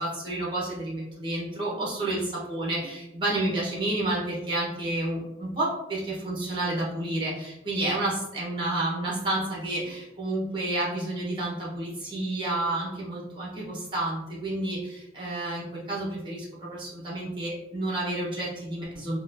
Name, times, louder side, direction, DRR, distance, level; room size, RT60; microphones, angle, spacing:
voice 1, 0.0-19.2, right 1 dB, 25° right, -5 dB, 1.1 m, -30 dB
4.0 x 2.3 x 2.7 m, 0.89 s
head